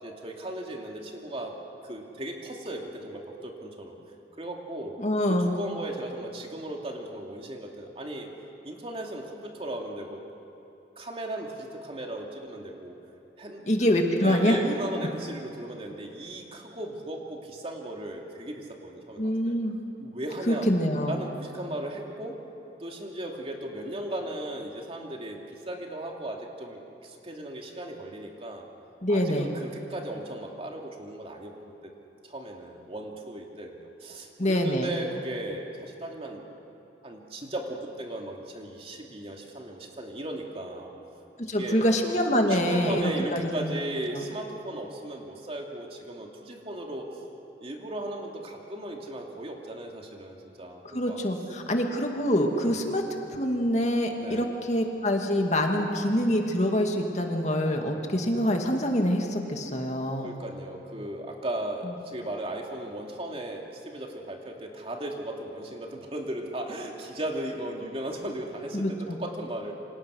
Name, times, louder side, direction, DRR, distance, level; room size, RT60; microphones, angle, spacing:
voice 1, 0.0-4.0 4.3-5.0 5.2-8.3 8.6-10.2 11.0-13.0 13.4-19.5 20.0-20.7 21.1-22.4 22.8-25.4 25.7-28.7 29.1-31.9 32.2-36.4 37.0-40.9 41.6-41.9 42.5-47.2 47.6-51.2 52.5-52.8 54.2-54.5 60.2-69.7, right 1 dB, 35° right, 1 dB, 2.7 m, -36 dB
voice 2, 5.0-5.6 13.7-14.6 19.2-19.8 20.5-21.2 29.0-29.5 34.4-34.9 41.5-43.7 44.1-44.2 50.9-53.0 53.3-60.3 68.7-69.2, equal, 40° left, 2 dB, 2.2 m, -25 dB
28.0 x 26.0 x 6.4 m, 3.0 s
head